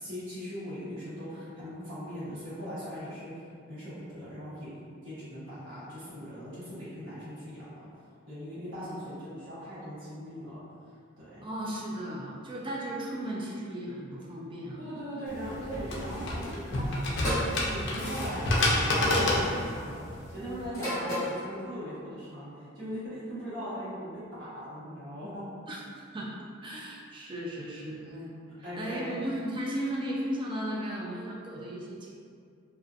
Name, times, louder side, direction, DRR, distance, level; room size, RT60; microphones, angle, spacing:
voice 1, 0.0-3.3 3.7-7.7 8.3-10.6 11.2-11.4 14.8-17.3 17.6-20.0 20.3-25.5 28.6-29.2, equal, 65° right, -13 dB, 1.0 m, -39 dB
voice 2, 11.4-14.8 25.7-25.8 26.1-26.3 26.6-32.1, right 1 dB, 25° right, -4 dB, 0.4 m, -36 dB
sound 1, 15.3-20.7, left 1 dB, 60° left, 0.5 m, -29 dB
sound 2, 17.2-17.6 18.8-19.1 20.7-21.4, equal, 15° left, 0.8 m, -31 dB
2.5 x 2.3 x 2.4 m, 2.2 s
head